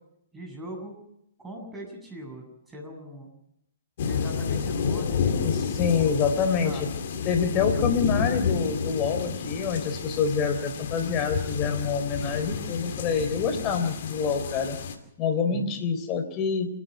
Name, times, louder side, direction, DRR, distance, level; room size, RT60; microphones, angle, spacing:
voice 1, 0.3-0.9 1.4-3.3 4.0-5.5 6.0-6.3 6.6-6.8 15.4-15.8, right 1 dB, 10° right, 0 dB, 7.6 m, -40 dB
sound 1, 4.0-15.0, left 6 dB, 55° left, 2.7 m, -30 dB
voice 2, 5.4-6.9 7.3-14.8 15.2-16.7, left 6 dB, 30° left, 7 dB, 3.6 m, -26 dB
29.0 x 10.5 x 9.2 m, 0.81 s
hypercardioid pair, 125°, 0 cm